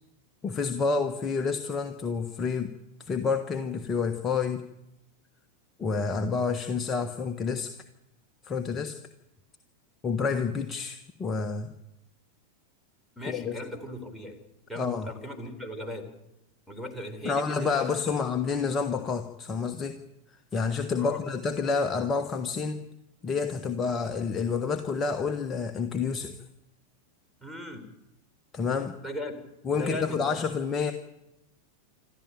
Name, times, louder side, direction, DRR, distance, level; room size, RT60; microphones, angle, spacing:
voice 1, 0.4-2.7 3.0-4.6 5.8-7.8 8.4-9.0 10.0-11.7 13.3-13.6 14.7-15.1 17.2-20.0 20.3-22.8 23.2-26.4 28.5-29.0 29.6-30.9, left 5 dB, 20° left, 6 dB, 1.3 m, -29 dB
voice 2, 13.2-14.4 14.7-16.1 16.7-18.2 21.0-21.2 27.4-27.8 29.0-29.3 29.7-30.4, left 1 dB, 5° left, 1 dB, 3.9 m, -37 dB
27.0 x 13.0 x 9.1 m, 0.90 s
figure-of-eight pair, 90°, 0 cm